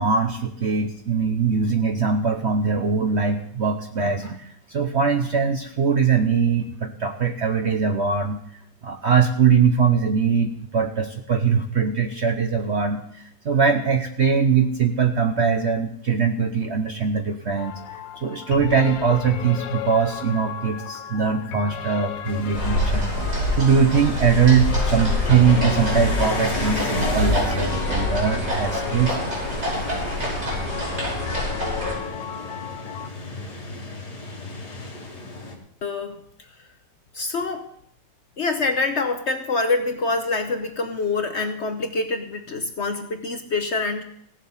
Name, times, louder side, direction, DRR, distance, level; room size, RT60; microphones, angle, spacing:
voice 1, 0.0-8.4 8.8-17.8 18.2-23.1 23.5-29.2, right 6 dB, 50° right, 5 dB, 0.8 m, -21 dB
sound 1, 17.6-33.1, left 10 dB, 90° left, 1.4 m, -34 dB
sound 2, 22.2-35.6, left 3 dB, 65° left, 2.7 m, -34 dB
sound 3, 22.5-31.9, equal, 75° right, 6.4 m, -26 dB
voice 2, 35.8-36.2 37.1-37.7 38.4-44.0, left 3 dB, 50° left, 6 dB, 1.0 m, -25 dB
16.0 x 7.6 x 5.5 m, 0.70 s
omnidirectional pair, 1.9 m